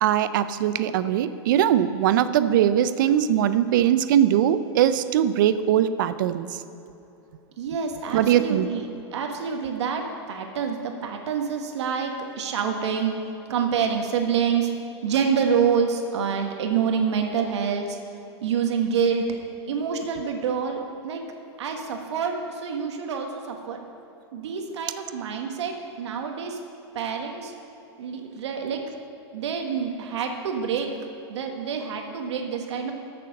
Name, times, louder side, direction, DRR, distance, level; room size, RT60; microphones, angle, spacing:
voice 1, 0.0-6.5 8.1-8.7, right 10 dB, 45° right, 13 dB, 0.4 m, -21 dB
voice 2, 7.6-13.1 13.5-14.7 15.0-18.0 18.4-19.2 19.7-21.2 21.6-23.8 24.3-26.6 26.9-27.5 28.0-28.8 29.3-30.9 31.3-32.9, right 6 dB, 80° right, 3 dB, 1.4 m, -27 dB
14.5 x 6.7 x 5.4 m, 2.9 s
supercardioid pair, 175°, 14 cm